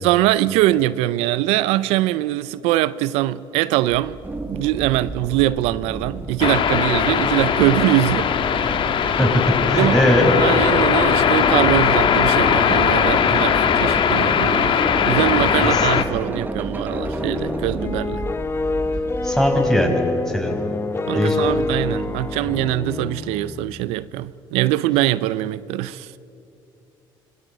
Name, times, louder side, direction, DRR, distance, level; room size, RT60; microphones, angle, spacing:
voice 1, 0.0-4.2 4.4-8.3 9.7-10.0 10.4-18.2 21.1-26.1, right 15 dB, 85° right, 0.5 m, -22 dB
sound 1, 3.9-19.7, right 2 dB, 20° right, 1.4 m, -32 dB
sound 2, 6.4-16.0, left 7 dB, 55° left, 1.6 m, -19 dB
voice 2, 9.7-10.3 15.6-15.9 19.2-20.5 21.1-21.6, equal, 5° left, 5.5 m, -20 dB
sound 3, 16.9-23.8, left 3 dB, 25° left, 0.9 m, -27 dB
26.5 x 19.0 x 8.6 m
supercardioid pair, 80°, 10 cm